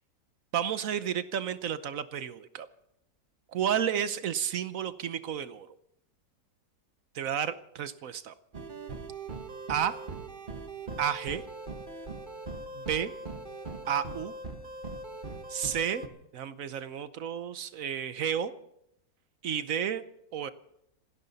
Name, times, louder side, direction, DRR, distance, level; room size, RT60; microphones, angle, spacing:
voice 1, 0.5-2.7 3.5-5.8 7.1-8.3 9.7-10.0 11.0-11.4 12.7-13.1 13.9-14.3 15.5-16.0 16.3-18.5 19.4-20.0 20.3-20.5, right 8 dB, 60° right, 13 dB, 1.0 m, -31 dB
sound 1, 8.5-16.1, right 3 dB, 30° right, 1.2 m, -41 dB
27.0 x 12.5 x 4.1 m, 0.78 s
omnidirectional pair, 1.9 m